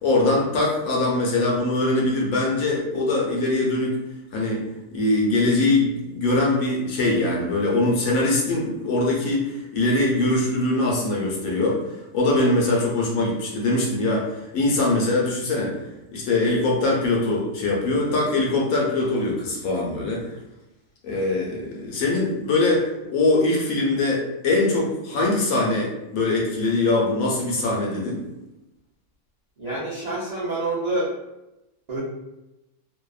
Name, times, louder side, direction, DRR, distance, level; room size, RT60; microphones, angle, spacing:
voice 1, 0.0-3.9 4.3-4.6 4.9-11.8 12.1-15.7 16.1-20.2 21.0-28.2, left 2 dB, 70° left, -3 dB, 1.0 m, -22 dB
voice 2, 29.6-31.1 31.9-32.0, right 2 dB, 70° right, -9 dB, 0.3 m, -27 dB
2.7 x 2.2 x 2.3 m, 0.93 s
omnidirectional pair, 1.6 m